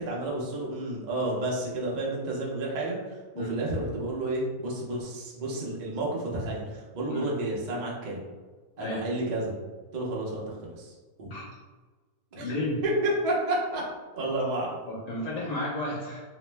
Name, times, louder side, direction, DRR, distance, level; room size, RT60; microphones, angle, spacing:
voice 1, 0.0-3.0 3.4-8.2 8.8-9.5 9.9-10.9 11.2-11.3 12.3-12.4 12.8-13.8 14.1-14.8, right 1 dB, 70° right, -4 dB, 0.4 m, -30 dB
voice 2, 12.4-12.8 14.9-16.2, left 1 dB, 35° left, -5 dB, 0.7 m, -32 dB
2.9 x 2.0 x 3.2 m, 1.4 s
omnidirectional pair, 1.7 m